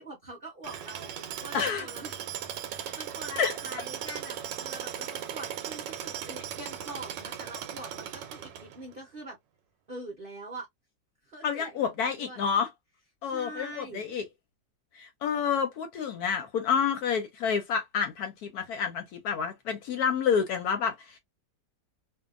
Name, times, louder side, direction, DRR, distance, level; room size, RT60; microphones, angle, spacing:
voice 1, 0.0-2.1 2.7-9.4 9.9-10.7 11.2-12.5 13.2-14.0, right 1 dB, 50° right, 0.7 m, -44 dB
Tools, 0.6-8.9, right 9 dB, 80° right, 1.2 m, -38 dB
voice 2, 1.5-1.9 3.4-3.5 11.4-12.7 13.2-14.2 14.9-21.2, left 7 dB, 70° left, 1.0 m, -29 dB
2.7 x 2.4 x 2.4 m
omnidirectional pair, 1.9 m